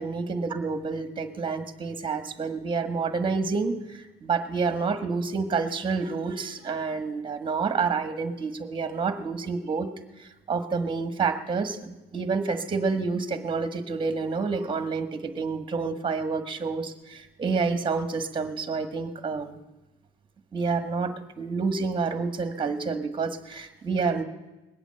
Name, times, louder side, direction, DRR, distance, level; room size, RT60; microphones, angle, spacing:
voice 1, 0.0-9.9 10.2-19.6 20.5-24.2, right 4 dB, 30° right, 9 dB, 1.4 m, -28 dB
20.0 x 8.1 x 7.7 m, 1.1 s
cardioid pair, 110°, 17 cm